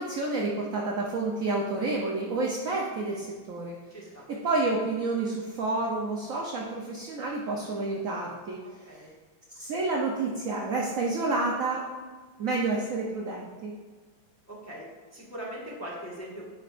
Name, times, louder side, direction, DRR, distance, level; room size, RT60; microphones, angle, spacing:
voice 1, 0.0-3.8 4.3-9.0 9.5-11.9 12.4-13.7, right 3 dB, 70° right, -2 dB, 0.8 m, -29 dB
voice 2, 3.9-4.2 8.9-9.1 14.5-14.8 15.1-16.5, right 1 dB, 10° left, -6 dB, 1.4 m, -40 dB
9.5 x 5.7 x 2.5 m, 1.4 s
omnidirectional pair, 2.4 m